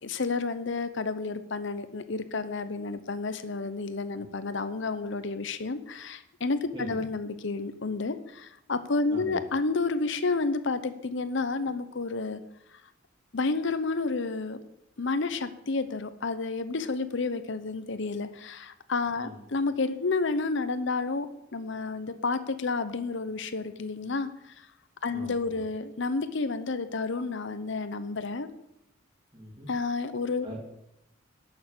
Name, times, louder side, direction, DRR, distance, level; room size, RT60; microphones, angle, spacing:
voice 1, 0.0-12.4 13.3-14.6 15.0-21.3 21.5-24.7 25.0-28.5 29.7-30.5, left 3 dB, 65° left, 12 dB, 0.8 m, -30 dB
voice 2, 6.7-7.0 9.1-9.4 19.1-19.4 25.0-25.6 29.3-29.7 30.4-30.6, equal, 25° right, -4 dB, 2.5 m, -43 dB
11.5 x 6.7 x 8.3 m, 0.82 s
head